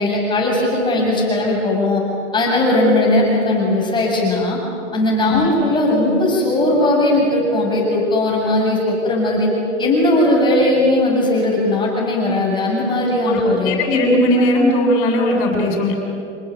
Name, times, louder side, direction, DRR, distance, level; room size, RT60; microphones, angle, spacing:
voice 1, 0.0-2.0 2.3-4.6 4.9-9.5 9.8-13.8, left 1 dB, 10° left, -2 dB, 7.5 m, -18 dB
voice 2, 13.2-16.0, left 1 dB, 35° left, 2 dB, 7.6 m, -17 dB
28.0 x 19.5 x 9.3 m, 2.6 s
hypercardioid pair, 140°, 37 cm